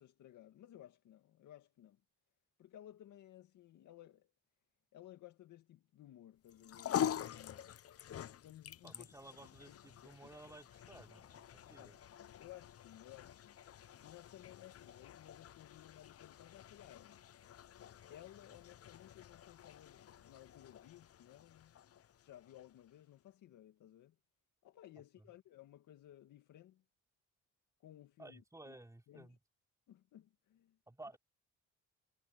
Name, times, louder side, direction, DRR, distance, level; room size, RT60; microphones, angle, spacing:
voice 1, 0.0-2.0 2.6-4.3 4.9-7.7 8.4-9.1 9.7-10.3 11.8-13.6 14.0-17.3 18.1-21.7 22.1-24.2 24.6-26.8 27.8-28.8 29.1-29.4 29.9-30.8, left 13 dB, 80° left, 2.1 m, -58 dB
sound 1, 6.5-23.0, left 10 dB, 50° left, 0.8 m, -46 dB
voice 2, 8.8-12.0 28.2-29.4 30.9-31.2, right 2 dB, 10° right, 4.0 m, -55 dB
cardioid pair, 90°, 30 cm